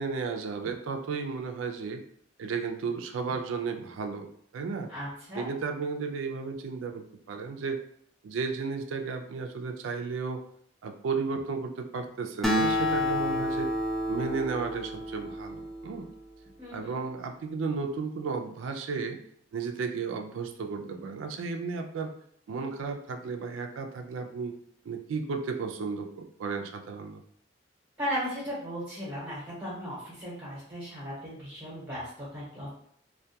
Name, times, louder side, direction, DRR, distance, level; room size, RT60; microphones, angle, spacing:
voice 1, 0.0-2.0 2.4-4.3 4.5-4.9 5.3-7.8 8.2-10.4 10.8-13.7 14.1-16.0 16.7-19.2 19.5-22.1 22.5-24.5 24.8-27.2, right 4 dB, 90° right, 4 dB, 0.3 m, -33 dB
voice 2, 4.9-5.5 16.6-16.9 28.0-32.7, equal, 20° right, -9 dB, 0.8 m, -36 dB
Acoustic guitar, 12.4-16.2, left 1 dB, ahead, 0.3 m, -30 dB
2.2 x 2.2 x 2.7 m, 0.66 s
head